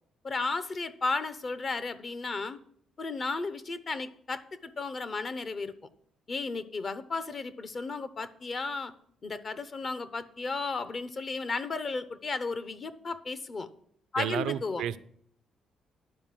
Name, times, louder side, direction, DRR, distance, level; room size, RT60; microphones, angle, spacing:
voice 1, 0.2-2.6 3.0-5.7 6.3-8.9 9.2-13.7 14.1-14.8, left 3 dB, 40° left, 14 dB, 0.8 m, -34 dB
voice 2, 14.2-15.0, right 11 dB, 85° right, 13 dB, 0.4 m, -31 dB
11.0 x 4.7 x 7.5 m, 0.66 s
cardioid pair, 90°, 0 cm